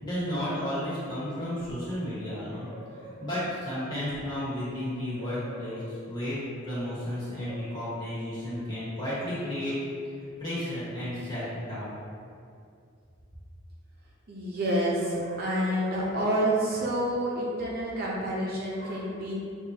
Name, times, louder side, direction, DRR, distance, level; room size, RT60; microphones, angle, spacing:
voice 1, 0.0-2.7 3.0-9.7 10.4-11.9, left 1 dB, 20° left, -11 dB, 1.4 m, -33 dB
voice 2, 2.2-3.3 5.2-5.9 7.4-7.8 14.3-19.3, right 1 dB, 45° right, -5 dB, 0.7 m, -30 dB
6.4 x 2.5 x 2.8 m, 2.4 s
head